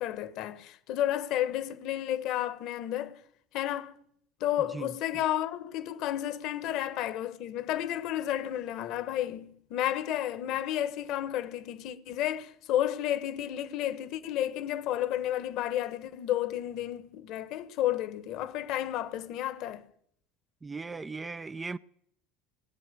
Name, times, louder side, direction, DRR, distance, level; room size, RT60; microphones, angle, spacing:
voice 1, 0.0-3.2 3.5-3.9 4.4-19.8, left 12 dB, 60° left, 1.2 m, -32 dB
voice 2, 20.6-21.8, right 4 dB, 20° right, 0.5 m, -38 dB
20.0 x 8.2 x 6.9 m
hypercardioid pair, 70°, 0 cm